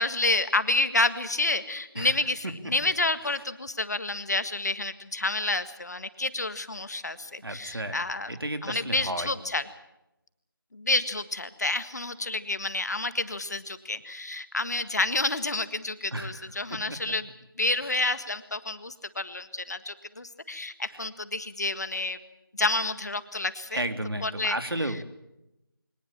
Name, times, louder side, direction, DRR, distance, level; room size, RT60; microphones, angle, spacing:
voice 1, 0.0-8.3 8.6-9.6 10.7-17.3 17.6-22.2 22.5-23.8 24.2-24.6, left 2 dB, 45° left, 12 dB, 1.7 m, -29 dB
voice 2, 7.4-8.0 8.3-9.3 16.1-16.5 17.8-18.0 20.9-21.0 23.7-25.0, right 1 dB, 80° right, 7 dB, 3.3 m, -33 dB
23.5 x 19.0 x 7.5 m, 0.89 s
figure-of-eight pair, 170°, 12 cm